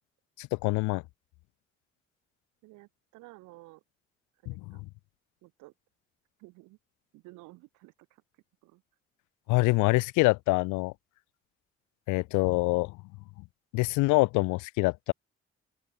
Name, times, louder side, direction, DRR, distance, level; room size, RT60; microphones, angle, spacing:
voice 1, 0.4-1.0 4.5-4.8 9.5-10.9 12.1-12.9 13.7-15.1, left 24 dB, 90° left, 0.6 m, -25 dB
voice 2, 2.6-3.8 4.4-4.9 5.4-5.7 6.4-6.8 7.1-8.2 8.6-8.8, right 22 dB, 90° right, 4.8 m, -53 dB
open air
supercardioid pair, 50°, 29 cm